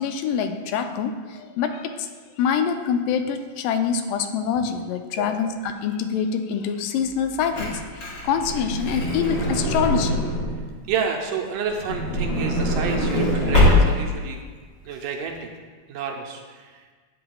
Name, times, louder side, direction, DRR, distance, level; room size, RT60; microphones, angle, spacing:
voice 1, 0.0-2.1 2.4-7.8 8.2-10.3, left 7 dB, 85° left, 7 dB, 2.2 m, -25 dB
voice 2, 5.2-5.6 10.9-14.4 14.9-15.5 15.9-16.9, right 6 dB, 80° right, 2 dB, 2.1 m, -30 dB
Truck / Door, 7.1-10.7 11.7-14.2 14.9-15.0 15.2-15.4, left 1 dB, 45° left, 1.9 m, -23 dB
11.0 x 8.5 x 2.3 m, 1.5 s
omnidirectional pair, 3.9 m